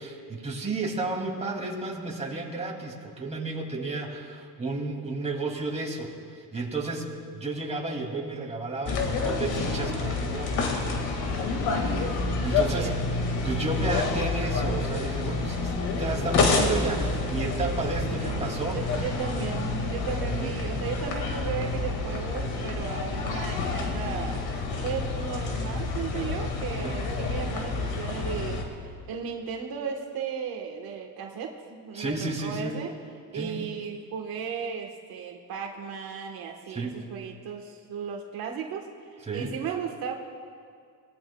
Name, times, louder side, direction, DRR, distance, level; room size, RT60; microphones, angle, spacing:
voice 1, 0.0-6.1 6.5-7.1 7.3-10.6 12.4-12.9 13.4-18.8 20.3-20.5 26.8-27.0 31.9-32.7 33.3-33.6 36.7-37.0 39.3-39.5, right 3 dB, 20° right, -1 dB, 2.6 m, -32 dB
sound 1, 8.9-28.6, left 3 dB, 90° left, 2.0 m, -28 dB
voice 2, 11.5-12.0 12.6-13.0 18.1-24.4 24.8-32.9 33.3-40.1, right 6 dB, 75° right, 2 dB, 1.4 m, -35 dB
22.5 x 17.5 x 2.3 m, 2.2 s
cardioid pair, 115°, 36 cm